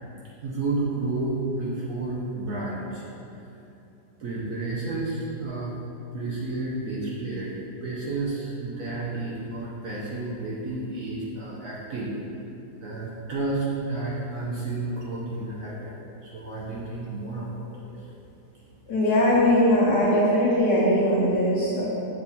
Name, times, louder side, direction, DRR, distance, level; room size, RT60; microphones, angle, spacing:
voice 1, 0.4-3.1 4.2-5.7 6.1-7.5 7.8-12.1 12.8-18.1, right 2 dB, 65° right, -7 dB, 0.9 m, -31 dB
voice 2, 18.9-21.9, left 1 dB, 80° left, -9 dB, 1.3 m, -20 dB
6.9 x 2.3 x 2.7 m, 2.8 s
omnidirectional pair, 1.8 m